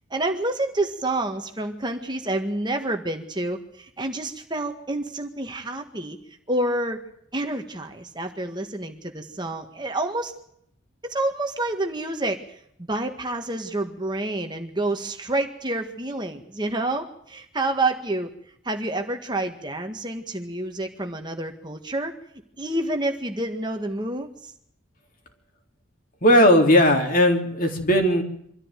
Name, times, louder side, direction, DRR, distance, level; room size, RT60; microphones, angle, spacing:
voice 1, 0.1-6.2 6.5-7.0 7.3-10.3 11.0-12.6 12.9-18.3 18.6-22.1 22.6-24.5, right 2 dB, 20° right, 5 dB, 1.7 m, -28 dB
voice 2, 26.2-28.2, equal, 45° left, 3 dB, 3.8 m, -17 dB
25.0 x 14.0 x 9.2 m, 0.71 s
head